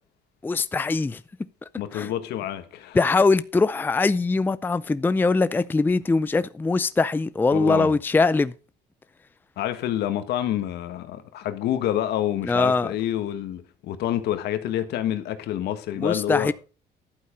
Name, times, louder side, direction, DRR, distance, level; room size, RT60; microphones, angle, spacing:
voice 1, 0.4-1.2 1.9-2.1 2.9-8.5 12.4-12.9 16.0-16.5, left 3 dB, 10° left, 0.4 m, -22 dB
voice 2, 1.8-3.0 7.5-8.0 9.6-16.5, left 12 dB, 75° left, 1.6 m, -28 dB
11.5 x 8.6 x 5.1 m
cardioid pair, 110°, 17 cm